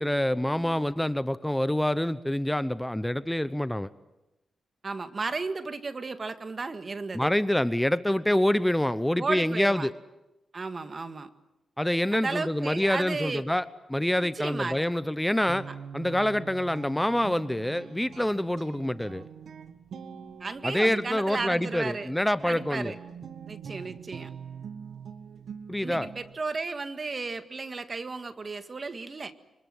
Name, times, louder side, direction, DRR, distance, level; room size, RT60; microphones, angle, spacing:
voice 1, 0.0-3.9 7.1-9.9 11.8-15.7 15.9-19.3 20.6-22.9 25.7-26.1, left 1 dB, 10° left, 15 dB, 0.8 m, -26 dB
voice 2, 4.8-7.3 9.2-9.9 10.5-11.3 12.1-13.4 14.2-14.8 20.4-22.1 22.4-22.9 23.5-24.3 25.8-29.3, right 3 dB, 45° right, 10 dB, 1.8 m, -34 dB
Guitar, 15.1-26.4, right 7 dB, 70° right, 1.7 m, -44 dB
25.0 x 24.0 x 7.8 m, 0.99 s
supercardioid pair, 50°, 0 cm